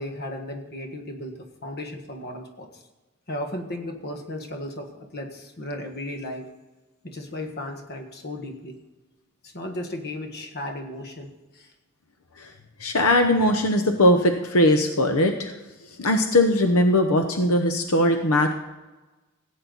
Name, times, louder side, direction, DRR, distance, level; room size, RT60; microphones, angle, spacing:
voice 1, 0.0-2.8 3.3-6.5 7.0-8.8 9.4-11.7, left 1 dB, 50° left, 4 dB, 1.6 m, -35 dB
voice 2, 12.8-15.5 16.0-18.5, left 1 dB, 85° left, 5 dB, 1.0 m, -20 dB
16.5 x 8.7 x 4.0 m, 1.1 s
head